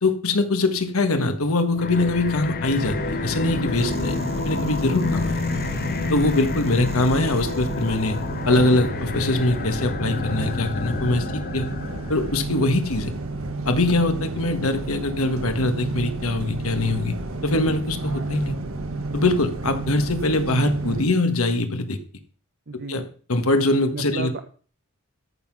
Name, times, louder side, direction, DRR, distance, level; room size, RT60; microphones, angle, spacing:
voice 1, 0.0-5.4 6.1-11.7 12.1-13.1 13.6-18.6 19.1-22.0 22.9-23.0 23.3-24.3, left 2 dB, 70° left, 7 dB, 1.6 m, -23 dB
sound 1, 1.7-12.4, left 4 dB, 45° left, 0.5 m, -29 dB
sound 2, 2.8-21.0, right 2 dB, 65° right, 1.6 m, -31 dB
sound 3, 3.7-8.6, right 1 dB, 30° right, 1.6 m, -39 dB
voice 2, 22.7-23.1 23.9-24.4, right 3 dB, 50° right, 7 dB, 1.0 m, -33 dB
13.5 x 5.8 x 6.2 m, 0.40 s
head